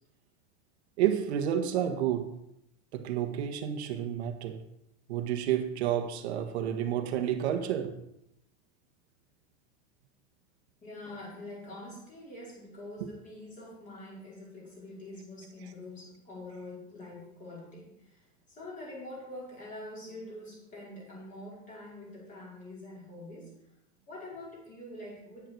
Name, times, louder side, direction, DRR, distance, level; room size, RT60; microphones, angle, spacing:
voice 1, 1.0-2.4 2.9-4.6 5.1-8.0 13.0-13.1, right 10 dB, 70° right, 1.4 m, -30 dB
voice 2, 10.8-23.6 24.1-25.5, left 1 dB, 25° left, 5.1 m, -45 dB
9.7 x 9.4 x 4.6 m
supercardioid pair, 150°, 34 cm